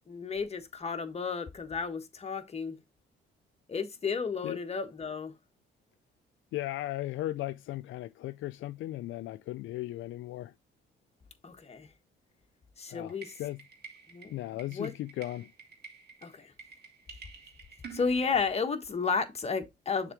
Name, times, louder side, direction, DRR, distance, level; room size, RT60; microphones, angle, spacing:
voice 1, 0.1-2.8 3.7-5.3 11.4-11.9 12.8-13.3 14.1-14.3 14.7-14.9 16.2-16.5 17.9-20.1, left 5 dB, 30° left, 1.5 m, -32 dB
voice 2, 6.5-10.5 12.9-13.6 14.3-15.5, left 15 dB, 75° left, 0.4 m, -37 dB
sound 1, 13.1-18.3, right 6 dB, 55° right, 2.0 m, -50 dB
6.8 x 3.8 x 4.7 m
cardioid pair, 90°, 20 cm